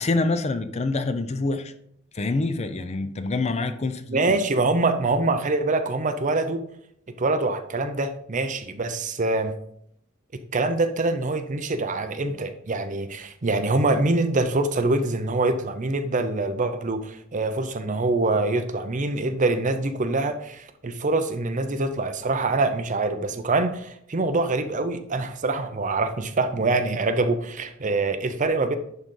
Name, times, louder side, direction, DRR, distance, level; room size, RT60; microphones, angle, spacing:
voice 1, 0.0-1.7 2.1-4.4, left 3 dB, 30° left, 9 dB, 0.5 m, -26 dB
voice 2, 4.1-6.6 7.2-9.5 10.5-28.8, right 2 dB, 35° right, 8 dB, 0.6 m, -24 dB
10.5 x 3.9 x 3.8 m, 0.70 s
head